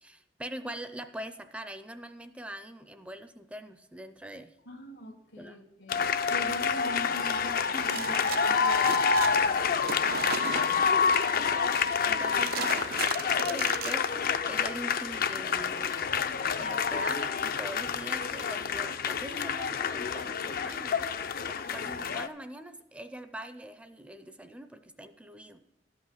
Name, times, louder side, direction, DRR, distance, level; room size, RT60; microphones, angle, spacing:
voice 1, 0.0-4.5 5.4-5.6 7.7-7.9 11.4-11.7 12.0-16.0 16.6-21.1 21.5-25.6, right 1 dB, 5° right, 9 dB, 0.5 m, -43 dB
voice 2, 4.7-10.9 12.4-12.9, left 1 dB, 85° left, 6 dB, 1.7 m, -43 dB
sound 1, 5.9-22.3, left 6 dB, 55° left, 0.5 m, -28 dB
sound 2, 7.9-14.4, right 7 dB, 60° right, 0.5 m, -37 dB
12.5 x 5.6 x 7.8 m, 0.87 s
head